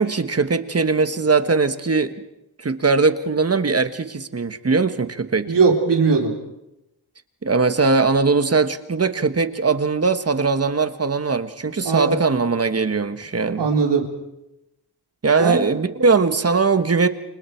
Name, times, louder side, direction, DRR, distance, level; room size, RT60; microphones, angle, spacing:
voice 1, 0.0-2.1 2.6-5.5 7.4-13.7 15.2-17.1, right 4 dB, 35° right, 10 dB, 1.4 m, -20 dB
voice 2, 5.5-6.3 11.8-12.2 13.6-14.1 15.4-15.7, right 5 dB, 75° right, 1 dB, 3.7 m, -19 dB
29.0 x 27.0 x 4.6 m, 0.91 s
cardioid pair, 80°, 41 cm